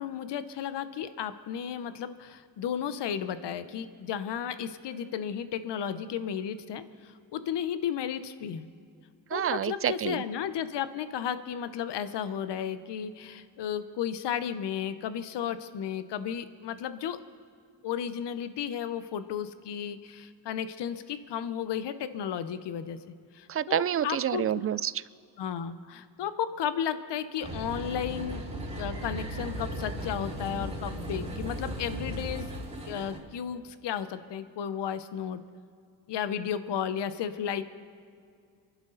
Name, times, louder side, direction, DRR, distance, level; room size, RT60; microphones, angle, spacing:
voice 1, 0.0-8.7 9.3-17.2 17.8-23.0 23.3-24.4 25.4-28.4 28.8-32.5 32.9-35.4 36.1-37.6, left 8 dB, 75° left, 12 dB, 1.0 m, -34 dB
voice 2, 9.3-10.2 23.5-24.9, right 9 dB, 35° right, 18 dB, 0.4 m, -28 dB
sound 1, 27.4-33.2, right 1 dB, 15° right, 3.7 m, -36 dB
28.0 x 11.5 x 4.0 m, 2.3 s
cardioid pair, 100°, 42 cm